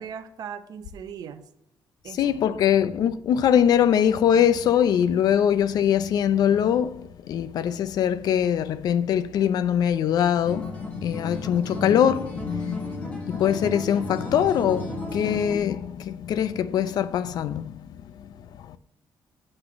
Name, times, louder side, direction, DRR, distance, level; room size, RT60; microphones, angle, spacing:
voice 1, 0.0-1.4 2.0-2.6, right 7 dB, 60° right, 0.6 m, -39 dB
voice 2, 2.1-18.8, left 9 dB, 60° left, 0.4 m, -23 dB
Acoustic guitar, 10.4-15.6, left 1 dB, 15° left, 1.2 m, -35 dB
7.8 x 3.9 x 5.6 m
cardioid pair, 165°, 8 cm